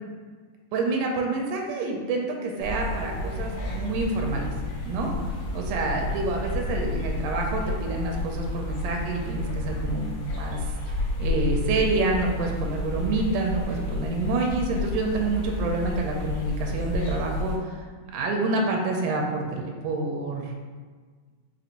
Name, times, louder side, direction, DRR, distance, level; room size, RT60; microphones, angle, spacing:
voice 1, 0.7-4.5 4.9-5.2 5.5-10.1 10.4-10.6 10.9-17.8 18.1-20.5, right 2 dB, 80° right, 1 dB, 2.1 m, -27 dB
sound 1, 2.6-17.6, left 2 dB, 75° left, 2.4 m, -31 dB
5.2 x 3.0 x 2.5 m, 1.5 s
omnidirectional pair, 3.7 m